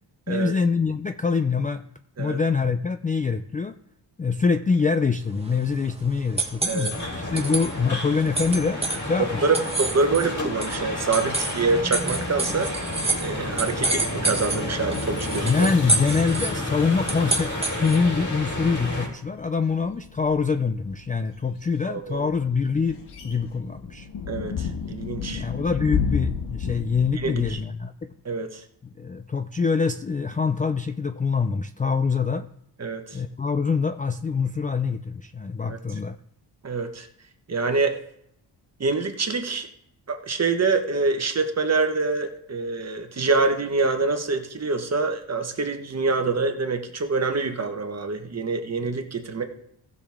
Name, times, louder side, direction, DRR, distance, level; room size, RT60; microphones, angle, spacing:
voice 1, 0.3-1.8 2.2-3.8 4.2-6.9 7.3-9.5 15.4-24.1 25.3-28.1 28.8-32.5 33.1-36.2, left 5 dB, 20° left, 9 dB, 0.3 m, -25 dB
sound 1, 5.3-18.2, right 2 dB, 15° right, 1.1 m, -30 dB
sound 2, 6.9-19.1, left 1 dB, 40° left, 3.6 m, -31 dB
voice 2, 9.2-12.7 13.2-15.7 21.8-22.3 24.3-25.4 27.2-27.6 28.2-28.6 32.8-33.2 35.6-35.8 36.6-37.1 37.5-38.0 38.8-39.7 40.1-49.4, right 4 dB, 35° right, 6 dB, 1.2 m, -26 dB
sound 3, 13.8-27.5, left 6 dB, 65° left, 1.4 m, -34 dB
15.5 x 6.8 x 3.5 m, 0.72 s
cardioid pair, 110°, 44 cm